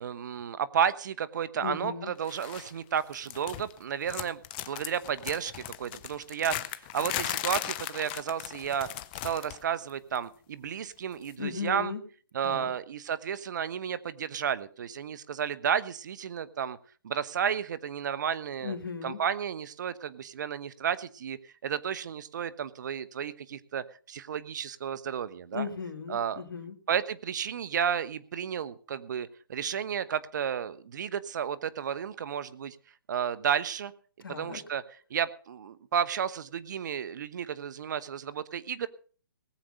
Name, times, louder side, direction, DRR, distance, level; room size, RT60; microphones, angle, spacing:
voice 1, 0.0-4.4 4.7-6.6 6.9-8.9 9.2-11.9 12.3-16.8 17.0-18.8 19.0-25.7 26.1-26.4 26.9-32.8 33.1-33.9 34.3-34.8 35.1-38.9, right 8 dB, 55° right, 16 dB, 1.0 m, -32 dB
voice 2, 1.6-2.1 11.4-12.0 12.4-12.7 18.6-19.2 25.5-26.8 34.2-34.6, left 5 dB, 80° left, 8 dB, 2.2 m, -36 dB
sound 1, 2.3-2.7 3.0-3.8 4.1-9.6 9.9-10.2 11.2-11.3, left 14 dB, 30° left, 0.8 m, -37 dB
19.0 x 7.7 x 5.5 m, 0.43 s
hypercardioid pair, 140°, 12 cm